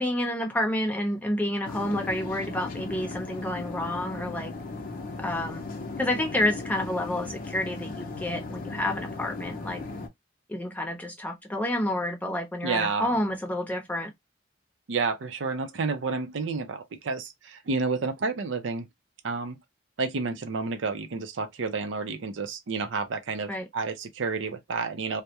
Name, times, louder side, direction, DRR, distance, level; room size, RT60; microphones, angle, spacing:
voice 1, 0.0-4.5 5.2-5.6 6.0-9.8 10.5-14.1 23.5-23.6, left 1 dB, 10° left, 0.6 m, -29 dB
sound 1, 1.6-10.1, left 3 dB, 50° left, 0.5 m, -37 dB
voice 2, 12.6-13.2 14.9-18.9 19.2-19.6 20.0-25.2, right 4 dB, 80° right, 0.5 m, -30 dB
2.3 x 2.1 x 2.8 m
head